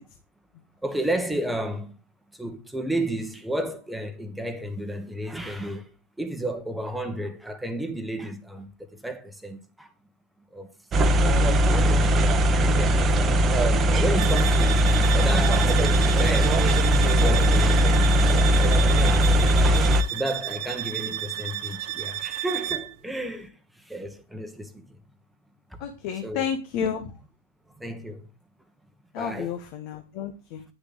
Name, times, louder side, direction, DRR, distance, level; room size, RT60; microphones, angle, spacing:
voice 1, 0.8-2.0 2.3-9.9 10.5-10.7 11.7-13.5 13.9-16.6 17.0-18.3 18.9-19.3 20.1-25.0 25.7-25.8 26.2-26.5 27.7-28.3 29.2-29.5, right 1 dB, 5° right, 1.3 m, -32 dB
sound 1, 10.9-20.0, equal, 25° right, 1.0 m, -19 dB
voice 2, 11.2-11.5 25.8-27.1 29.1-30.6, left 7 dB, 45° left, 1.3 m, -31 dB
sound 2, 14.2-23.0, right 13 dB, 45° right, 0.9 m, -32 dB
9.8 x 6.6 x 3.9 m
figure-of-eight pair, 100°, 0 cm